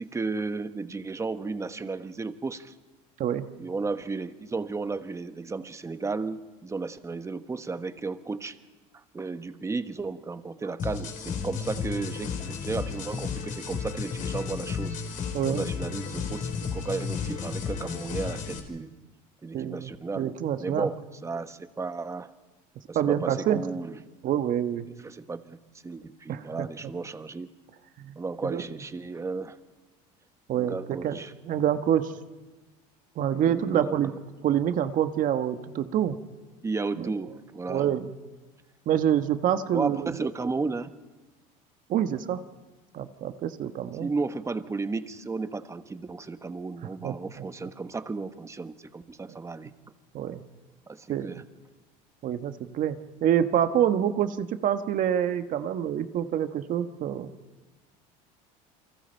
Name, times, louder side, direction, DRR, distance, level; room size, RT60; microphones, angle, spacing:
voice 1, 0.0-2.7 3.6-8.6 8.9-15.0 15.5-18.9 19.4-20.3 20.6-22.3 22.9-24.0 24.9-27.5 28.2-29.6 30.5-31.3 33.3-34.0 36.6-37.9 39.7-40.9 44.0-49.7 50.9-51.4, right 4 dB, 15° right, 10 dB, 1.2 m, -34 dB
sound 1, 10.8-18.6, left 6 dB, 45° left, 3.8 m, -33 dB
voice 2, 19.5-19.9 20.2-20.9 22.9-23.6 24.2-24.8 26.3-26.7 28.0-28.2 28.4-28.6 30.5-32.1 33.2-34.1 34.4-36.2 37.0-37.1 37.7-38.1 38.9-40.1 41.9-42.4 42.9-44.1 47.0-47.4 50.1-50.4 51.1-51.4 52.2-57.3, right 10 dB, 50° right, 9 dB, 1.3 m, -26 dB
29.0 x 24.0 x 4.5 m, 1.2 s
supercardioid pair, 110°, 18 cm